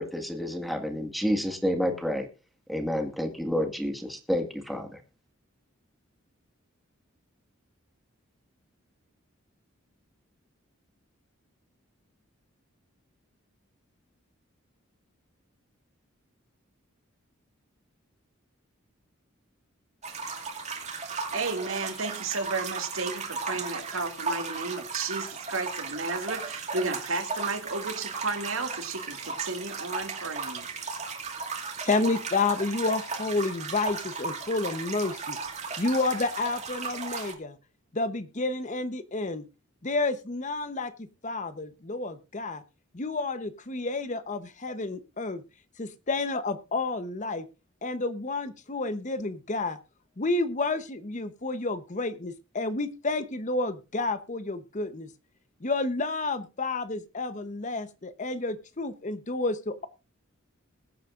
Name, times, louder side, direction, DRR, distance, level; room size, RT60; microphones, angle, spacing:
voice 1, 0.0-2.3 2.7-5.0, equal, ahead, 4 dB, 1.7 m, -29 dB
sound 1, 20.0-37.3, right 4 dB, 35° right, 2.2 m, -36 dB
voice 2, 21.1-30.7, right 3 dB, 80° right, 5 dB, 2.3 m, -33 dB
voice 3, 31.8-35.4 35.8-37.6 37.9-39.4 39.8-42.6 42.9-45.4 45.8-47.5 47.8-49.8 50.2-55.1 55.6-59.9, left 3 dB, 35° left, 12 dB, 0.9 m, -30 dB
21.0 x 9.1 x 2.5 m, 0.31 s
head